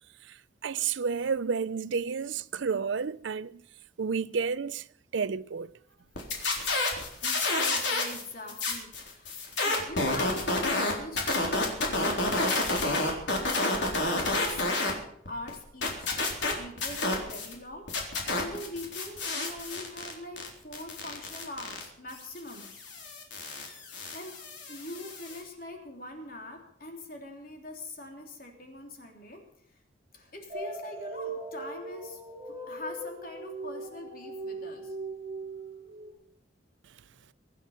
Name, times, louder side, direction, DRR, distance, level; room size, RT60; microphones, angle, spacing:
voice 1, 0.6-3.6 4.0-4.8 5.1-5.7, right 5 dB, 75° right, 0.5 m, -30 dB
sound 1, 6.2-8.2 8.5-14.9 15.3-17.5 17.9-25.4, left 2 dB, 70° left, 4.0 m, -30 dB
voice 2, 7.2-9.3 9.6-13.1 13.4-22.7 24.1-24.4 24.7-29.4 30.1-32.2 32.5-34.9, left 2 dB, 50° left, 3.2 m, -42 dB
sound 2, 30.5-36.1, right 2 dB, 30° right, 6.8 m, -39 dB
24.5 x 9.2 x 5.7 m
head